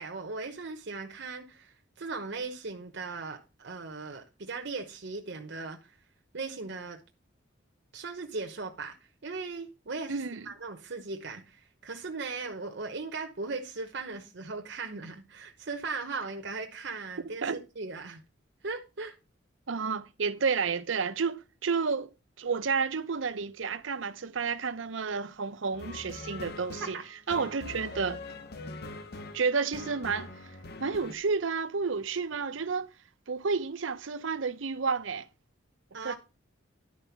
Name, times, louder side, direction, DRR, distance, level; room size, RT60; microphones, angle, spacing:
voice 1, 0.0-5.9 6.3-7.0 7.9-9.0 9.2-17.5 17.8-18.2 18.6-19.2 26.9-27.0 35.9-36.1, right 4 dB, 60° right, 1.0 m, -38 dB
voice 2, 10.1-10.5 17.4-17.6 19.7-22.1 22.4-27.0 27.3-28.2 29.3-30.3 30.8-32.9 33.3-35.3 36.0-36.1, right 5 dB, 80° right, 0.7 m, -31 dB
sound 1, 25.7-31.1, left 2 dB, 55° left, 1.0 m, -43 dB
11.0 x 4.5 x 5.8 m
head